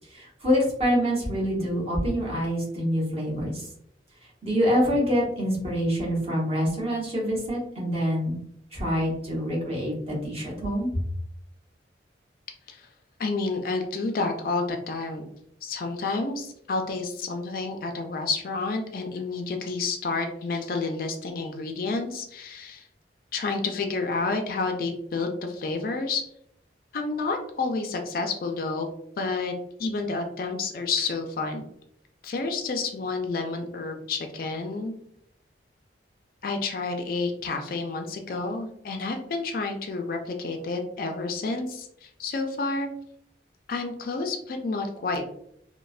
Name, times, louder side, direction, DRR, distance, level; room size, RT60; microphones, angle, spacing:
voice 1, 0.1-3.7 4.4-8.4 8.7-11.0, equal, 30° right, -4 dB, 0.9 m, -26 dB
voice 2, 13.2-15.3 15.6-22.9 23.3-26.2 26.9-28.9 29.2-29.5 29.8-31.7 32.2-34.9 36.4-42.9 43.7-45.3, left 3 dB, 50° left, 4 dB, 0.3 m, -30 dB
3.1 x 2.0 x 2.3 m, 0.71 s
head